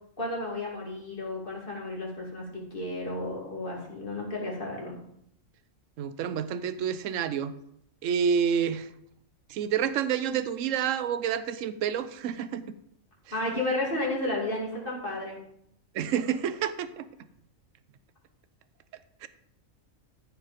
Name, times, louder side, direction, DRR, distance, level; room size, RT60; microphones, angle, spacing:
voice 1, 0.2-2.5 2.7-5.0 13.3-15.4, left 2 dB, 40° left, -3 dB, 3.0 m, -32 dB
voice 2, 6.0-7.5 8.0-8.9 9.5-12.6 13.3-13.4 15.9-17.1 19.2-19.3, right 8 dB, 75° right, 13 dB, 1.0 m, -28 dB
14.5 x 4.9 x 5.2 m, 0.74 s
omnidirectional pair, 1.4 m